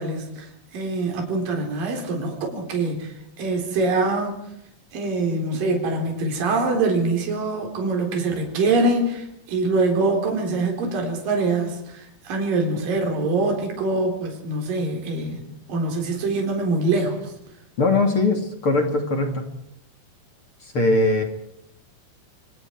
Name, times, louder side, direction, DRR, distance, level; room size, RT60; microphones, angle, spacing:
voice 1, 0.0-4.4 4.9-15.4 15.7-17.3, right 3 dB, 60° right, 2 dB, 5.6 m, -24 dB
voice 2, 17.8-19.5 20.6-21.2, left 2 dB, 35° left, 4 dB, 3.0 m, -21 dB
27.5 x 25.5 x 4.7 m, 0.77 s
omnidirectional pair, 4.6 m